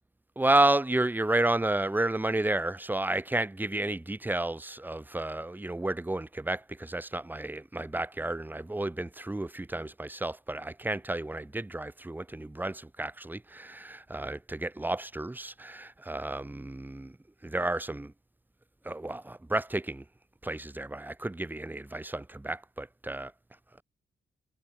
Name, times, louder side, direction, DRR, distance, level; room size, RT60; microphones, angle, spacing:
voice 1, 0.3-17.2 17.4-18.1 18.8-20.0 20.4-23.3, right 2 dB, 10° right, 1.7 m, -31 dB
cardioid pair, 125°, 18 cm